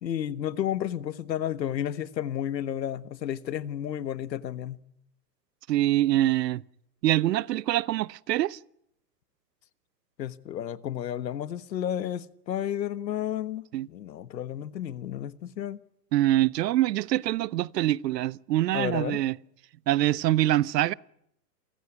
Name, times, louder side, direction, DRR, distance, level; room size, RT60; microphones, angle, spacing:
voice 1, 0.0-4.8 10.2-15.8 18.7-19.2, left 10 dB, 90° left, 1.4 m, -32 dB
voice 2, 5.7-6.6 7.0-8.6 13.7-13.9 16.1-19.4 19.9-20.9, right 14 dB, 75° right, 0.9 m, -24 dB
28.5 x 15.0 x 9.8 m
hypercardioid pair, 125°, 49 cm